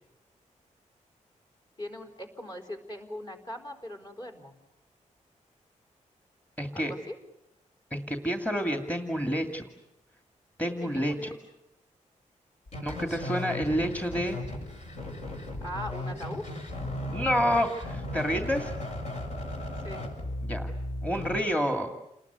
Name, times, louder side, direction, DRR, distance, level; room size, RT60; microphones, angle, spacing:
voice 1, 1.8-4.5 6.7-7.2 10.9-11.4 15.6-16.4 19.8-20.0, left 1 dB, 35° left, 5 dB, 4.7 m, -40 dB
voice 2, 6.6-6.9 7.9-9.6 10.6-11.1 12.8-14.4 17.1-18.7 20.4-20.7 21.0-21.9, equal, 10° left, 5 dB, 2.4 m, -28 dB
sound 1, 12.7-21.4, left 1 dB, 60° left, 7.0 m, -36 dB
29.5 x 20.5 x 9.5 m, 0.86 s
wide cardioid pair, 140°, 13 cm